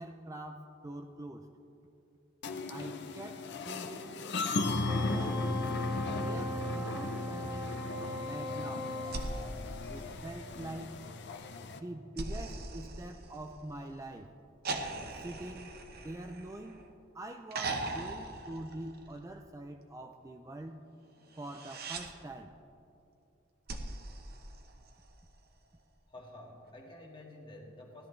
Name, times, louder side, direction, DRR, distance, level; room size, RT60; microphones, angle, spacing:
voice 1, 0.0-1.5 2.7-4.2 4.9-5.5 6.1-7.7 8.2-8.9 9.9-11.0 11.7-14.3 15.2-15.8 16.0-16.8 17.1-20.8 21.4-22.5, right 1 dB, 15° right, 5 dB, 0.4 m, -44 dB
sound 1, 2.4-11.8, left 3 dB, 60° left, 0.6 m, -36 dB
Wind instrument woodwind instrument, 4.8-9.3, left 1 dB, ahead, 1.8 m, -39 dB
sound 2, 9.1-10.7 12.2-13.8 14.7-16.9 17.5-19.3 21.3-22.1 23.7-25.2 26.7-26.8, right 2 dB, 55° right, 1.0 m, -40 dB
voice 2, 26.1-28.1, left 1 dB, 25° left, -1 dB, 1.9 m, -50 dB
17.0 x 12.5 x 3.2 m, 2.8 s
head